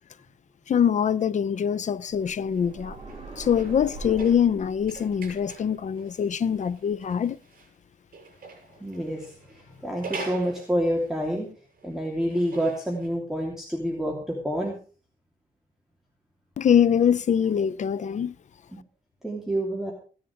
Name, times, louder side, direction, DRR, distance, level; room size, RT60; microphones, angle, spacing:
voice 1, 0.7-3.0 3.4-7.4 16.6-18.3, left 8 dB, 55° left, 0.6 m, -23 dB
sound 1, 2.1-7.0, right 2 dB, 35° right, 7.7 m, -43 dB
sound 2, 2.4-7.7 8.1-11.3 11.6-13.1, right 4 dB, 75° right, 7.4 m, -44 dB
voice 2, 8.8-9.3 9.8-11.5 11.8-14.7 19.2-19.9, equal, 5° right, 3.0 m, -28 dB
16.0 x 10.5 x 4.9 m
wide cardioid pair, 140°, 15 cm